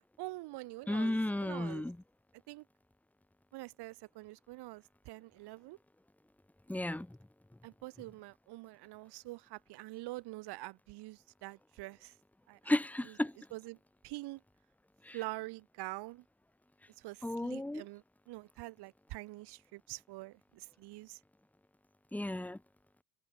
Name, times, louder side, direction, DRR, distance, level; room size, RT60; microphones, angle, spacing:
voice 1, 0.0-1.9 2.5-2.6 3.5-5.8 7.6-12.1 12.5-12.7 13.0-13.1 13.5-13.8 14.0-14.4 15.1-16.2 17.0-21.2, right 20 dB, 55° right, 2.2 m, -46 dB
voice 2, 0.9-2.0 6.7-7.2 12.6-13.3 15.0-15.2 17.2-17.8 22.1-22.6, left 1 dB, 5° left, 1.6 m, -33 dB
hypercardioid pair, 75°, 47 cm